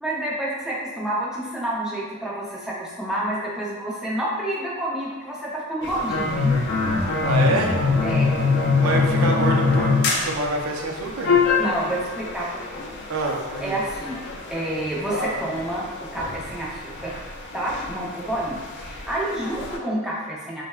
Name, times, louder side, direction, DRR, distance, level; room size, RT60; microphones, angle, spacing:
voice 1, 0.0-6.6 8.0-8.3 11.6-12.9 13.6-14.2 14.5-17.1 17.5-20.6, right 1 dB, 5° right, -6 dB, 0.5 m, -29 dB
sound 1, 5.8-19.8, left 4 dB, 55° left, 0.4 m, -25 dB
voice 2, 7.2-7.8 8.8-11.3 13.1-13.8, right 2 dB, 85° right, 0 dB, 0.5 m, -26 dB
3.3 x 2.1 x 2.2 m, 1.2 s
head